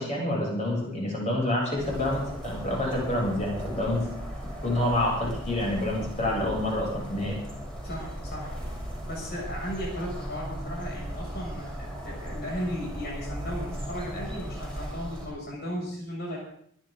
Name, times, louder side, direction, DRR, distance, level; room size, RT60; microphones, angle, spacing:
voice 1, 0.0-4.1 4.6-7.4, left 1 dB, 30° left, -3 dB, 7.7 m, -28 dB
sound 1, 1.8-15.3, equal, 5° left, 5.5 m, -37 dB
voice 2, 7.8-8.5 9.1-16.4, equal, 50° left, -3 dB, 7.0 m, -36 dB
26.0 x 11.0 x 3.9 m, 0.64 s
head